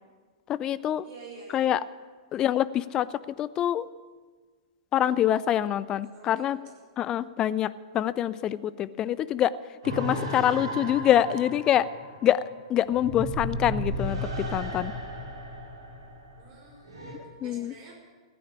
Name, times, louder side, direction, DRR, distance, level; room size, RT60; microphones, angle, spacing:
voice 1, 0.5-1.0 1.5-1.8 2.3-3.1 3.4-3.9 4.9-6.6 7.0-9.5 9.8-11.9 12.2-12.4 12.7-14.9 17.4-17.7, left 11 dB, 25° left, 17 dB, 0.5 m, -25 dB
voice 2, 1.0-1.7 6.0-6.5 16.4-17.9, right 4 dB, 35° right, -1 dB, 5.6 m, -48 dB
sound 1, 9.8-17.1, equal, 65° right, 5.4 m, -34 dB
15.5 x 9.3 x 8.5 m, 1.5 s
figure-of-eight pair, 105°, 3 cm